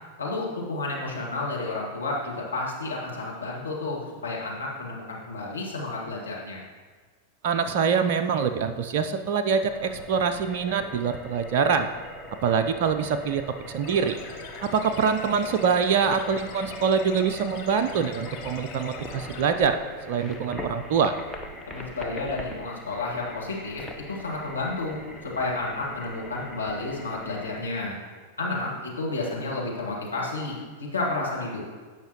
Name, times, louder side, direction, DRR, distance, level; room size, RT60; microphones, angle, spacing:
voice 1, 0.2-6.6 21.7-25.0 25.2-28.0 28.4-31.6, left 2 dB, 80° left, -4 dB, 1.9 m, -31 dB
voice 2, 7.4-11.9 12.4-14.2 14.6-19.8 20.1-21.1, right 6 dB, 50° right, 8 dB, 0.5 m, -24 dB
sound 1, 9.7-27.7, equal, 5° left, 0.9 m, -42 dB
sound 2, 13.8-19.4, left 6 dB, 45° left, 1.0 m, -43 dB
15.5 x 5.8 x 3.0 m, 1.5 s
figure-of-eight pair, 90°, 0 cm